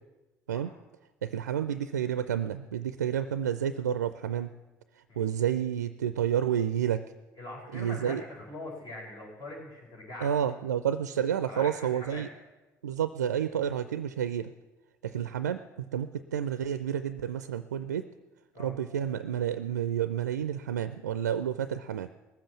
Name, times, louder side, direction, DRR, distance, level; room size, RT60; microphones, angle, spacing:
voice 1, 1.2-4.5 5.2-7.0 7.7-8.2 10.2-12.3 12.8-14.5 15.0-15.6 15.9-18.0 18.6-22.1, right 9 dB, 85° right, 12 dB, 0.4 m, -30 dB
voice 2, 7.4-10.4 11.5-12.2 18.5-18.7, left 2 dB, 50° left, -2 dB, 4.8 m, -42 dB
18.0 x 7.7 x 7.1 m, 1.1 s
figure-of-eight pair, 55°, 9 cm